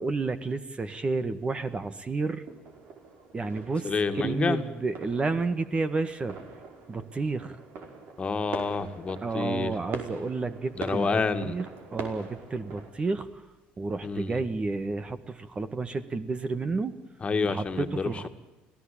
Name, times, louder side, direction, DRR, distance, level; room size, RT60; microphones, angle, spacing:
voice 1, 0.0-2.4 3.3-6.4 6.9-7.6 9.2-11.7 11.9-13.3 13.8-16.9 17.4-18.3, right 3 dB, 25° right, 11 dB, 1.7 m, -31 dB
sound 1, 2.4-12.9, right 4 dB, 60° right, 5.2 m, -43 dB
voice 2, 3.8-4.6 8.2-9.7 10.8-11.6 14.0-14.4 17.2-18.3, left 4 dB, 30° left, 7 dB, 2.3 m, -28 dB
25.5 x 17.0 x 8.7 m, 1.1 s
supercardioid pair, 90°, 4 cm